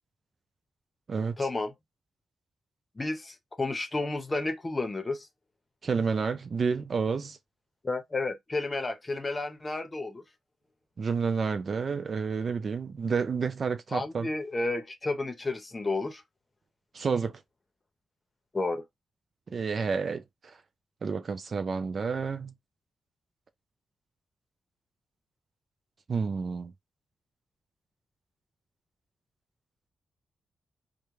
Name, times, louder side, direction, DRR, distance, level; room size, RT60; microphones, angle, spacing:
voice 1, 1.4-1.7 3.0-5.3 7.8-10.2 13.9-16.2 18.5-18.8, left 2 dB, 30° left, 0.8 m, -31 dB
voice 2, 5.8-7.4 11.0-14.3 16.9-17.4 19.5-20.2 21.0-22.5 26.1-26.7, right 5 dB, 55° right, 0.4 m, -29 dB
2.2 x 2.2 x 3.1 m
cardioid pair, 55°, 0 cm